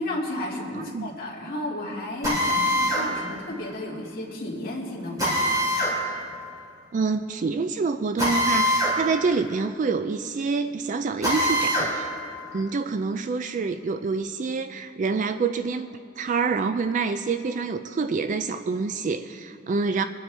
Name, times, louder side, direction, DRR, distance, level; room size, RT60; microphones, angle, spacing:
voice 1, 0.0-5.7, left 1 dB, 45° left, -4 dB, 2.4 m, -33 dB
voice 2, 0.7-1.1 6.9-12.1 12.5-15.9 16.2-20.0, right 4 dB, 40° right, 10 dB, 0.3 m, -27 dB
Drill, 2.2-3.1 5.2-6.0 8.2-9.0 9.3-9.4 11.2-11.9, equal, 20° right, 3.7 m, -23 dB
22.0 x 9.7 x 3.3 m, 2.4 s
head